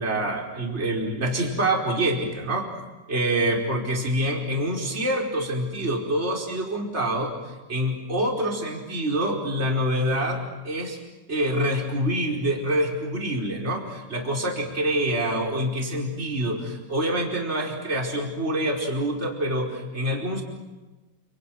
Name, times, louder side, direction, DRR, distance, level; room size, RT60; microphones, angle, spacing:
voice 1, 0.0-2.7 3.1-11.0 11.3-20.4, right 1 dB, 15° right, 0 dB, 4.4 m, -26 dB
30.0 x 29.0 x 6.3 m, 1.2 s
omnidirectional pair, 5.9 m